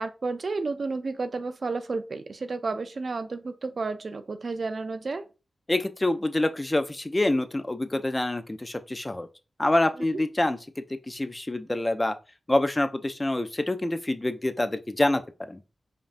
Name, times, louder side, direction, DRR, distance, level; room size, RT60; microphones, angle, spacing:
voice 1, 0.0-5.3, right 3 dB, 60° right, 0.4 m, -31 dB
voice 2, 5.7-9.3 9.6-10.6 11.1-12.1 12.5-15.2 15.5-15.6, left 1 dB, 20° left, 0.4 m, -26 dB
5.1 x 2.6 x 2.5 m
wide cardioid pair, 90°, 0 cm